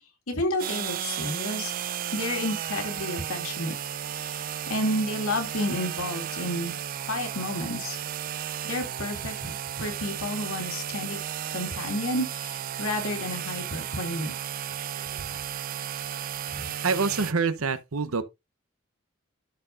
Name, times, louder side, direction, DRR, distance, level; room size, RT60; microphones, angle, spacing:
voice 1, 0.3-1.7 2.1-3.8 4.1-6.7 7.1-8.0 8.6-11.2 11.5-14.3 16.5-16.7, left 1 dB, 85° left, 2.3 m, -31 dB
sound 1, 0.6-17.3, right 10 dB, 40° right, 0.3 m, -34 dB
voice 2, 14.7-15.4 16.8-18.2, right 4 dB, 85° right, 0.9 m, -27 dB
13.0 x 4.4 x 2.6 m
head